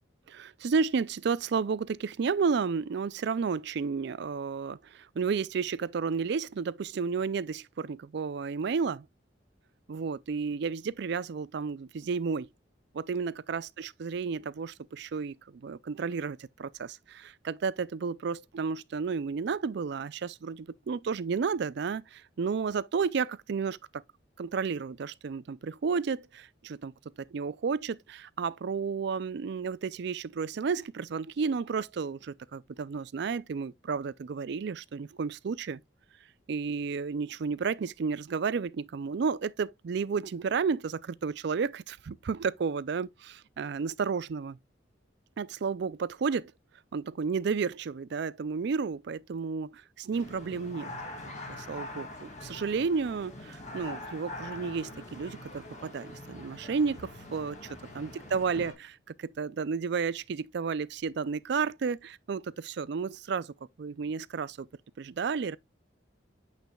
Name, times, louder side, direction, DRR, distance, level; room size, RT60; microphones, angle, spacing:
voice 1, 0.3-9.1 9.9-12.5 12.9-24.0 24.4-26.9 27.2-35.8 36.5-44.6 45.4-46.5 46.9-50.9 51.5-57.6 57.9-63.5 63.8-64.7 65.0-65.6, right 5 dB, 60° right, 0.4 m, -32 dB
sound 1, 50.1-58.7, left 2 dB, 40° left, 2.2 m, -43 dB
8.9 x 5.3 x 2.3 m
head